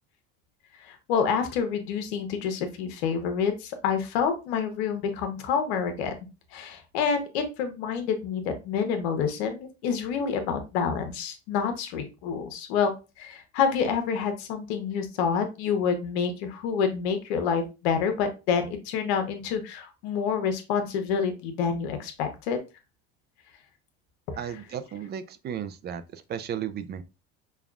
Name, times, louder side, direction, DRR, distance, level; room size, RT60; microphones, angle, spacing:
voice 1, 0.8-6.1 6.5-22.6 24.3-24.6, left 6 dB, 80° left, 0.9 m, -28 dB
voice 2, 24.4-27.0, right 8 dB, 35° right, 0.4 m, -34 dB
5.4 x 2.3 x 2.3 m
supercardioid pair, 95°, 31 cm